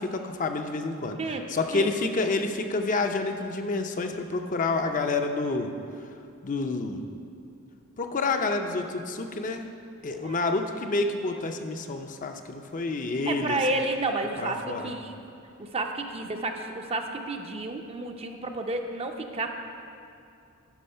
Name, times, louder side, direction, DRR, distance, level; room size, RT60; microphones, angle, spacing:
voice 1, 0.0-1.2 1.5-5.7 6.4-7.0 8.0-9.6 10.0-13.6 14.4-14.9, left 3 dB, 35° left, 5 dB, 0.5 m, -28 dB
voice 2, 1.2-1.9 10.2-10.4 13.3-15.1 15.6-19.6, right 2 dB, 30° right, 4 dB, 0.5 m, -31 dB
12.0 x 5.1 x 5.6 m, 2.5 s
head